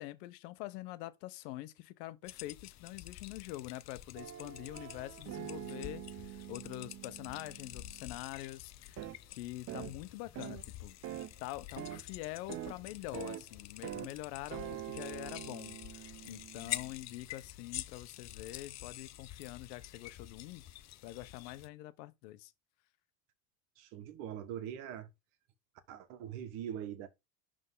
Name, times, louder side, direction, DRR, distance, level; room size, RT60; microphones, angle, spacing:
voice 1, 0.0-11.0 11.4-20.7 21.0-22.5, left 16 dB, 75° left, 1.0 m, -45 dB
sound 1, 2.2-21.7, left 14 dB, 35° left, 0.5 m, -48 dB
sound 2, 4.2-8.2 9.0-9.2 9.7-10.0 10.4-10.6 11.0-11.3 11.8-12.0 12.5-12.7 13.1-13.4 13.8-14.1 14.5-16.9, right 12 dB, 30° right, 0.5 m, -45 dB
voice 2, 23.8-25.1 25.9-27.1, right 10 dB, 65° right, 1.5 m, -42 dB
11.0 x 3.7 x 3.9 m
supercardioid pair, 110°, 49 cm